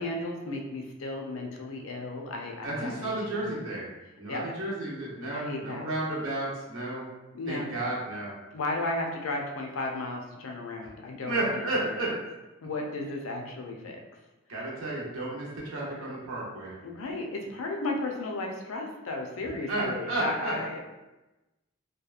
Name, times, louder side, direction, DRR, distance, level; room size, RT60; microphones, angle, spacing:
voice 1, 0.0-3.7 4.3-4.5 5.3-5.9 7.3-7.7 8.5-12.0 12.6-14.0 16.8-20.8, left 2 dB, 70° left, 1 dB, 0.4 m, -34 dB
voice 2, 2.6-3.9 4.2-7.0 7.5-8.3 11.3-12.1 14.5-16.7 19.7-20.8, right 2 dB, 75° right, -5 dB, 0.7 m, -32 dB
2.8 x 2.2 x 2.3 m, 1.0 s
head